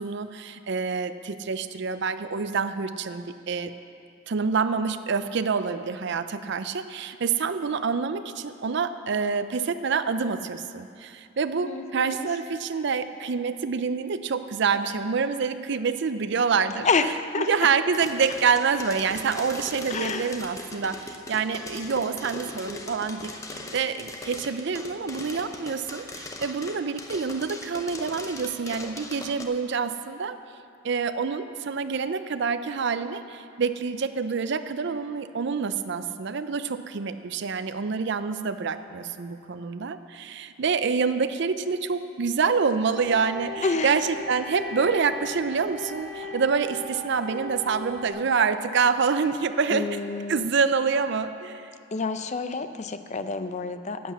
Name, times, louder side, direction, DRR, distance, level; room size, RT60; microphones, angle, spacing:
voice 1, 0.0-3.7 4.3-16.9 17.4-23.3 23.7-30.4 30.8-49.9 50.3-51.7, right 5 dB, 60° right, 11 dB, 0.5 m, -27 dB
voice 2, 11.6-12.3 16.8-17.5 19.9-20.4 43.6-44.0 46.2-46.3 49.7-50.5 51.9-54.1, left 4 dB, 35° left, 10 dB, 0.5 m, -28 dB
sound 1, 17.9-29.4, left 2 dB, 15° left, 0.8 m, -40 dB
sound 2, 42.9-48.1, left 1 dB, ahead, 1.8 m, -38 dB
11.5 x 8.5 x 7.0 m, 2.5 s
head